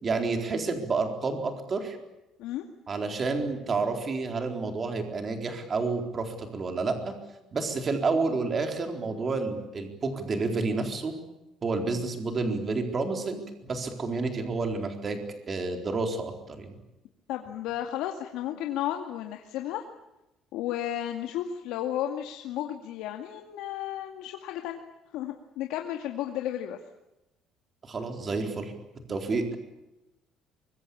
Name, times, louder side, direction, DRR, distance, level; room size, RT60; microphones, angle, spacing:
voice 1, 0.0-2.0 2.9-7.1 7.5-11.1 11.6-15.2 15.5-16.7 27.8-28.7 29.1-29.5, right 3 dB, 25° right, 5 dB, 4.1 m, -29 dB
voice 2, 17.3-19.8 20.5-24.8 25.1-26.8, left 11 dB, 80° left, 4 dB, 2.3 m, -33 dB
24.5 x 23.0 x 8.6 m, 0.94 s
cardioid pair, 165°, 0 cm